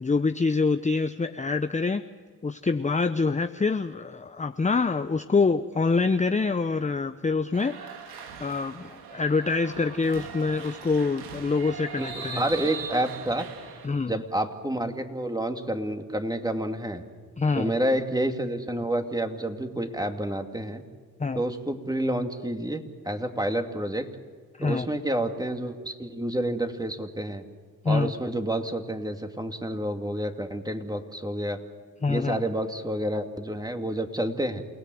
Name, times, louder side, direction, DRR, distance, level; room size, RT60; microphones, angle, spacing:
voice 1, 0.0-2.0 2.4-7.8 8.4-12.4 13.8-14.1 17.4-17.7 21.2-21.4 24.6-24.9 27.8-28.1 32.0-32.4, left 4 dB, 20° left, 9 dB, 0.8 m, -25 dB
sound 1, 7.5-13.9, right 6 dB, 85° right, 1.7 m, -40 dB
voice 2, 11.9-13.5 14.1-17.0 17.6-20.8 21.3-24.1 24.6-27.4 27.8-31.6 32.1-34.6, right 1 dB, 10° right, 5 dB, 2.5 m, -29 dB
28.5 x 17.0 x 7.9 m, 1.5 s
supercardioid pair, 50°, 39 cm